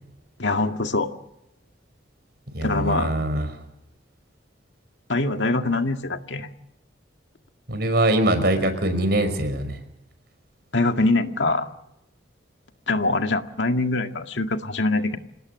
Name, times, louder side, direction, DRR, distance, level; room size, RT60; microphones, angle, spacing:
voice 1, 0.4-1.1 2.6-3.1 5.1-6.5 10.7-11.7 12.9-15.2, left 2 dB, 75° left, 6 dB, 2.0 m, -23 dB
voice 2, 2.5-3.5 7.7-9.8, right 1 dB, 60° right, 9 dB, 5.4 m, -22 dB
27.5 x 18.5 x 8.1 m, 0.85 s
head